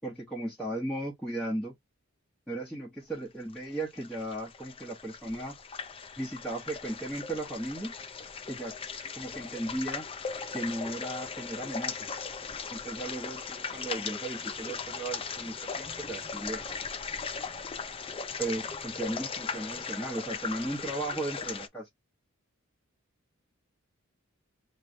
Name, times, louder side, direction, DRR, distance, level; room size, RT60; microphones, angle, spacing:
voice 1, 0.0-1.7 2.5-5.5 6.2-7.9 8.5-8.7 9.1-10.1 10.5-12.0 12.7-16.9 18.4-21.9, right 1 dB, 5° left, 1.2 m, -36 dB
sound 1, 3.5-21.7, left 5 dB, 25° left, 0.4 m, -38 dB
3.1 x 2.9 x 3.8 m
head